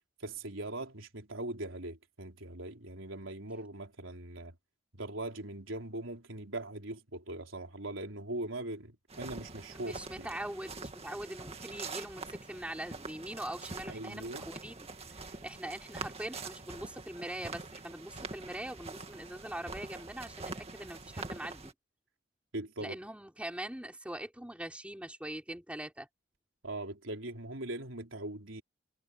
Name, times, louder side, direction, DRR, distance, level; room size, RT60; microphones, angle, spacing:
voice 1, 0.2-4.6 4.9-10.3 13.9-14.5 22.5-23.0 26.6-28.6, right 2 dB, 85° right, 3.8 m, -41 dB
sound 1, 9.1-21.7, right 3 dB, 30° right, 2.1 m, -45 dB
voice 2, 9.8-21.7 22.8-26.1, right 1 dB, 5° right, 3.9 m, -42 dB
head